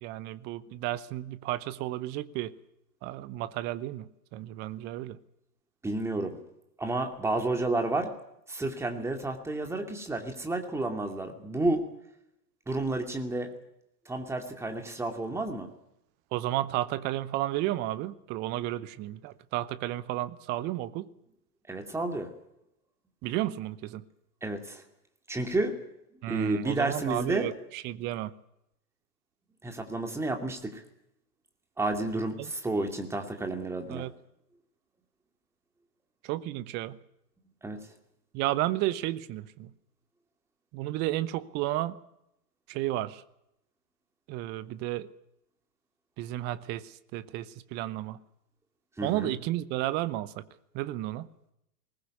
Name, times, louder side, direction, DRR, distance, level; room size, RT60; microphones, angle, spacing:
voice 1, 0.0-2.6 3.0-5.2 16.3-21.1 23.2-24.0 26.2-28.3 32.4-32.5 33.9-34.1 36.2-37.0 38.3-39.7 40.7-42.0 42.7-43.2 44.3-45.1 46.2-48.2 49.0-50.5 50.7-51.3, right 15 dB, 20° right, 0.7 m, -32 dB
voice 2, 5.8-6.4 6.8-8.1 8.5-11.8 12.7-13.5 14.1-15.7 21.7-22.3 24.4-24.8 25.3-25.8 26.3-27.5 29.6-30.8 31.8-34.1 37.6-37.8 49.0-49.3, right 2 dB, 5° right, 2.5 m, -31 dB
21.0 x 19.0 x 8.3 m
figure-of-eight pair, 110°, 50 cm